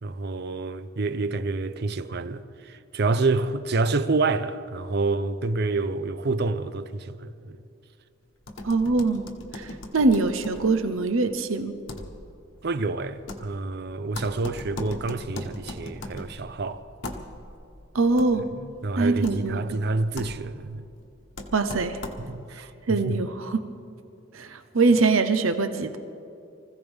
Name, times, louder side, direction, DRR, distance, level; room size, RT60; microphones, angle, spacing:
voice 1, 0.0-7.6 12.6-16.9 18.5-20.8 22.2-23.2, right 3 dB, 55° right, 0.6 m, -28 dB
sound 1, 8.4-22.5, left 1 dB, 70° left, 1.3 m, -40 dB
voice 2, 8.6-9.3 9.5-11.7 17.9-18.5 19.0-19.8 21.5-22.0 22.6-23.6 24.3-26.0, right 3 dB, 90° right, 0.8 m, -23 dB
24.5 x 15.5 x 3.6 m
head